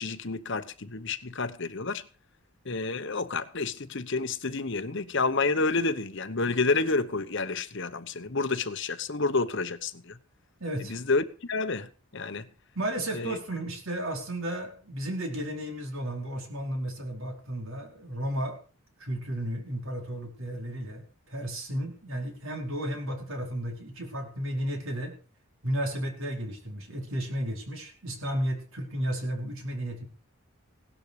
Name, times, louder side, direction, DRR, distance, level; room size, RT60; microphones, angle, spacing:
voice 1, 0.0-2.0 2.7-10.2 10.9-12.5 13.1-13.4, left 3 dB, 55° left, 1.0 m, -29 dB
voice 2, 10.6-11.0 12.7-18.6 19.0-25.1 25.6-30.1, right 1 dB, 65° right, 4.9 m, -33 dB
17.5 x 12.0 x 4.9 m
head